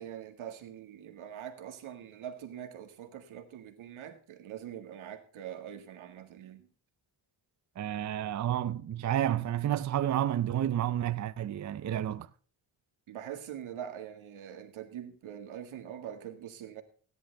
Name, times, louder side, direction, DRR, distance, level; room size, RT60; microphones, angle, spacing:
voice 1, 0.0-6.7 13.1-16.8, right 9 dB, 90° right, 1.9 m, -43 dB
voice 2, 7.8-12.3, right 11 dB, 40° right, 0.5 m, -30 dB
16.5 x 10.0 x 3.3 m
cardioid pair, 125°, 47 cm